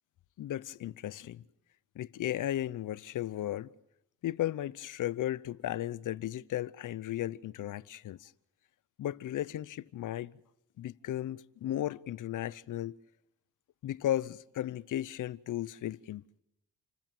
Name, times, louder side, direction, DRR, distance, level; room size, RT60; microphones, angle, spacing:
voice 1, 0.4-1.4 1.9-3.7 4.2-8.3 9.0-10.4 10.8-13.0 13.8-16.4, left 12 dB, 85° left, 0.8 m, -35 dB
28.5 x 15.0 x 8.9 m
wide cardioid pair, 140°, 31 cm